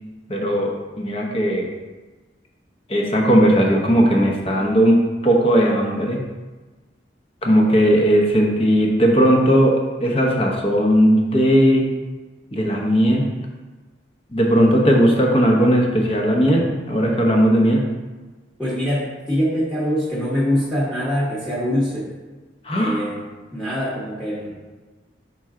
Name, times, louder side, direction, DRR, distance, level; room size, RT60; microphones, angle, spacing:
voice 1, 0.3-1.7 2.9-6.2 7.4-11.9 12.5-13.3 14.3-17.8 22.6-23.0, equal, 30° left, 0 dB, 0.9 m, -17 dB
voice 2, 18.6-22.1 22.8-23.3 23.5-24.6, equal, 5° left, -7 dB, 1.2 m, -23 dB
6.0 x 4.4 x 3.7 m, 1.3 s
head